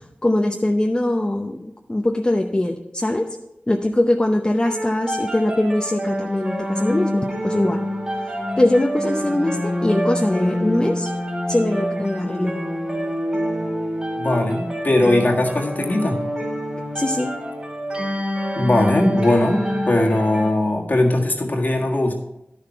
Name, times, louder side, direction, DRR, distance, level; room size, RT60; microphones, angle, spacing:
voice 1, 0.0-3.3 3.7-7.8 8.2-11.1 11.5-12.5 16.9-17.3, left 1 dB, 25° left, 3 dB, 0.7 m, -22 dB
sound 1, 4.7-20.5, equal, 25° right, 3.3 m, -26 dB
voice 2, 14.2-16.2 18.6-22.1, left 1 dB, 55° left, 0 dB, 1.7 m, -19 dB
11.0 x 6.8 x 4.6 m, 0.86 s
wide cardioid pair, 60°, 4 cm